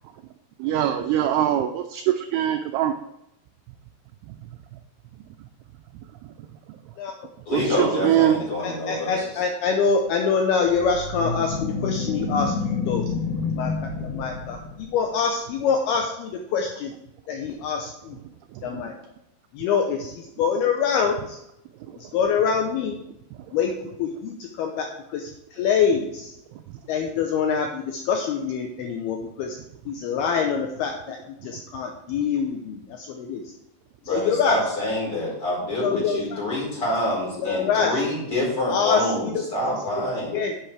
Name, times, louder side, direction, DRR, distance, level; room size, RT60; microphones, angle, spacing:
voice 1, 0.6-2.9 4.3-4.4 7.5-8.4 18.5-18.8 21.9-22.0 23.5-23.6, right 11 dB, 85° right, 6 dB, 2.3 m, -23 dB
voice 2, 7.5-9.2 34.1-40.4, left 1 dB, 30° left, -5 dB, 4.9 m, -26 dB
voice 3, 8.6-13.0 13.5-13.7 14.0-16.9 17.3-18.2 18.6-18.9 19.5-21.4 22.0-23.0 23.5-23.7 24.0-26.3 26.9-29.6 29.9-31.2 31.4-33.4 34.1-34.6 35.8-36.4 37.4-38.0 38.7-39.1 40.0-40.1 40.3-40.5, left 6 dB, 75° left, 3 dB, 2.4 m, -25 dB
sound 1, 10.6-15.0, left 4 dB, 55° left, 1.5 m, -28 dB
10.5 x 8.3 x 3.4 m, 0.83 s
omnidirectional pair, 5.1 m